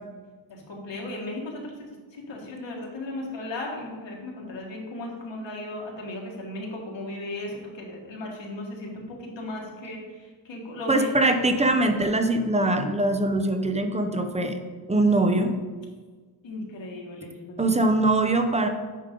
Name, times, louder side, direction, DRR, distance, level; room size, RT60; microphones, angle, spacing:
voice 1, 0.5-1.7 2.1-11.1 16.4-17.5, left 1 dB, 70° left, -1 dB, 1.9 m, -36 dB
voice 2, 10.9-14.6 14.9-15.5 17.6-18.7, right 2 dB, 15° right, 6 dB, 0.6 m, -22 dB
9.3 x 5.3 x 3.8 m, 1.4 s
wide cardioid pair, 120°, 47 cm